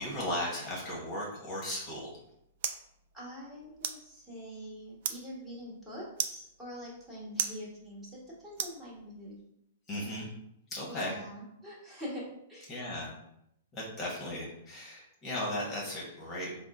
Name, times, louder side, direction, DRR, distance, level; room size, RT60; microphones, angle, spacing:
voice 1, 0.0-2.2 9.9-10.3 10.7-11.1 12.7-13.1 13.7-16.5, left 1 dB, 25° left, -4 dB, 1.1 m, -36 dB
sound 1, 1.8-9.4, right 9 dB, 55° right, 0.3 m, -41 dB
voice 2, 3.1-9.4 10.9-12.7, equal, 10° right, -7 dB, 1.4 m, -44 dB
3.6 x 2.1 x 3.7 m, 0.78 s
hypercardioid pair, 145°, 0 cm